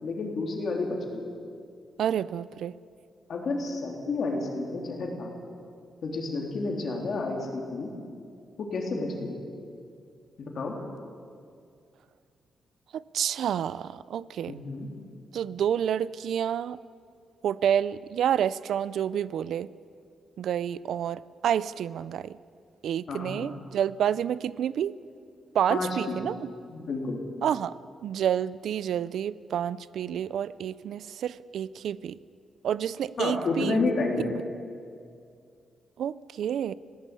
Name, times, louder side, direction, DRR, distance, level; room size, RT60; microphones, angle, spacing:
voice 1, 0.0-1.3 3.3-5.3 6.0-7.9 8.6-9.4 10.4-10.7 14.5-14.9 23.1-23.4 25.7-26.3 26.7-27.2 33.2-34.4, left 3 dB, 45° left, 1 dB, 3.4 m, -30 dB
voice 2, 2.0-2.7 12.9-14.6 15.3-16.8 17.4-19.7 20.4-22.4 22.8-24.9 25.5-26.4 27.4-27.7 28.0-32.2 32.6-33.9 36.0-36.7, right 9 dB, 70° right, 18 dB, 0.4 m, -29 dB
20.5 x 17.0 x 8.5 m, 2.3 s
wide cardioid pair, 175°, 0 cm